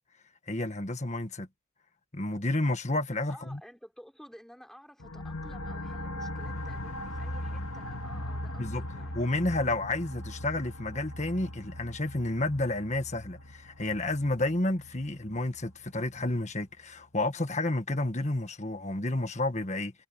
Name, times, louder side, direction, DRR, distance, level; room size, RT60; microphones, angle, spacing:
voice 1, 0.5-1.5 2.1-3.6 8.6-8.8 9.1-19.9, left 2 dB, 30° left, 1.7 m, -30 dB
voice 2, 3.3-9.2, equal, ahead, 3.6 m, -52 dB
sound 1, 5.0-16.3, left 1 dB, 80° left, 2.3 m, -39 dB
head